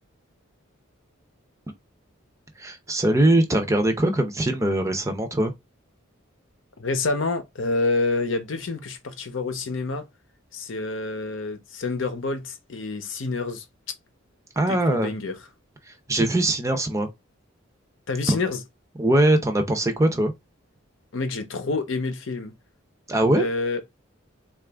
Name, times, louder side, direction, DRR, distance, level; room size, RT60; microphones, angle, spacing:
voice 1, 2.6-5.5 14.6-15.1 15.9-17.1 18.3-18.4 19.0-20.3 23.1-23.5, right 1 dB, 15° right, 0.6 m, -21 dB
voice 2, 6.8-10.1 10.5-13.9 14.7-15.4 18.1-18.6 21.1-22.5 23.3-23.8, left 3 dB, 65° left, 0.7 m, -28 dB
3.9 x 2.4 x 3.4 m
head